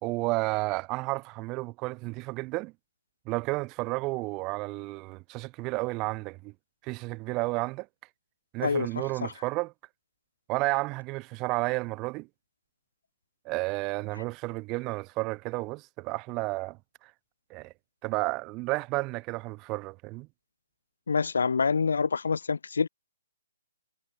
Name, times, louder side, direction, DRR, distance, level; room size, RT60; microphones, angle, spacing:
voice 1, 0.0-2.7 3.3-6.5 6.8-7.9 8.5-9.7 10.5-12.3 13.4-17.1 17.5-17.7 18.0-20.3, right 24 dB, 25° right, 0.8 m, -32 dB
voice 2, 8.6-9.3 21.1-22.9, left 5 dB, 70° left, 1.3 m, -27 dB
figure-of-eight pair, 140°, 0 cm